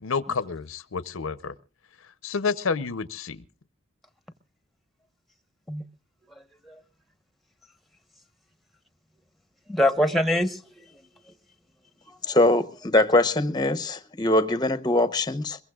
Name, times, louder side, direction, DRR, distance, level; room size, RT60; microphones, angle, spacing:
voice 1, 0.0-1.5 2.2-3.4, left 5 dB, 80° left, 0.7 m, -29 dB
voice 2, 6.3-6.8 9.7-11.1 12.1-12.4, left 1 dB, ahead, 1.1 m, -26 dB
voice 3, 12.3-15.6, left 1 dB, 20° left, 0.8 m, -22 dB
22.5 x 22.0 x 2.4 m
head